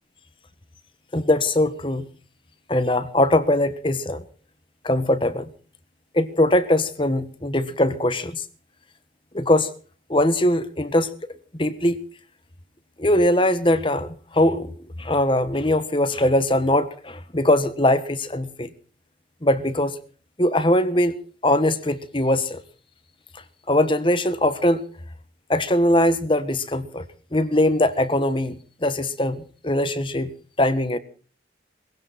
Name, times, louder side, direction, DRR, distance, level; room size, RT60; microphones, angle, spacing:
voice 1, 1.1-2.1 2.7-4.2 4.8-5.4 6.1-8.4 9.3-9.7 10.1-11.1 11.6-12.0 13.0-14.7 15.0-18.7 19.4-20.0 20.4-21.1 21.4-22.6 23.7-24.8 25.5-27.0 27.3-31.0, left 1 dB, 25° left, 1.4 m, -21 dB
20.5 x 16.0 x 4.3 m
head